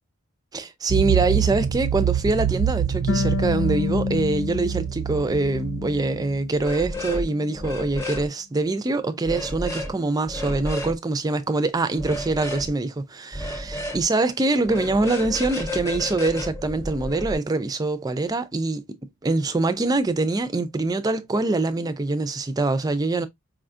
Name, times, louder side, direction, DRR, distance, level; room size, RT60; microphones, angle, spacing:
voice 1, 0.5-18.8 19.2-23.3, right 2 dB, 15° right, 0.3 m, -24 dB
sound 1, 0.9-6.7, right 9 dB, 90° right, 0.4 m, -26 dB
Harp, 3.1-6.5 6.8-7.9, left 7 dB, 50° left, 0.4 m, -31 dB
sound 2, 6.6-7.3 7.5-8.3 9.3-9.9 10.3-10.9 12.0-12.7 13.3-14.0 14.6-17.3, left 1 dB, 15° left, 0.8 m, -31 dB
4.8 x 2.3 x 2.5 m
head